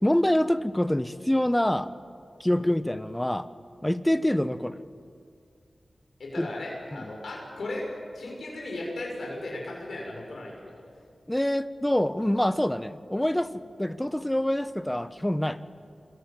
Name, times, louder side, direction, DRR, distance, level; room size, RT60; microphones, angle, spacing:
voice 1, 0.0-1.9 2.4-3.5 3.8-4.8 6.4-6.5 11.3-15.6, left 1 dB, 10° left, 13 dB, 1.1 m, -25 dB
voice 2, 6.2-7.9 8.1-10.8, left 2 dB, 80° left, -2 dB, 6.8 m, -36 dB
27.0 x 22.0 x 9.0 m, 2.3 s
cardioid pair, 55°, 0 cm